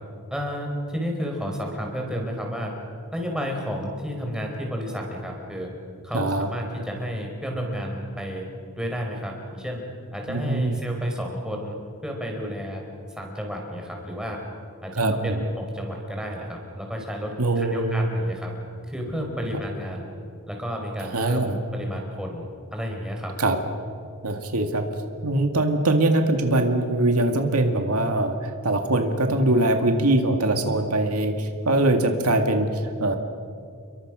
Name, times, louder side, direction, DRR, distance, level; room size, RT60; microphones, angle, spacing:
voice 1, 0.3-2.7 3.1-5.7 6.0-8.4 8.8-9.8 10.1-11.8 12.0-12.8 13.1-14.4 14.8-18.5 18.9-20.1 20.5-22.4 22.7-23.4 31.7-31.9, equal, 5° right, 1 dB, 4.7 m, -31 dB
voice 2, 6.1-6.5 10.3-10.7 15.0-15.4 17.4-18.1 21.0-21.6 23.4-23.6 24.2-24.8 25.2-33.2, right 2 dB, 80° right, 5 dB, 2.1 m, -22 dB
29.5 x 23.0 x 6.3 m, 2.4 s
head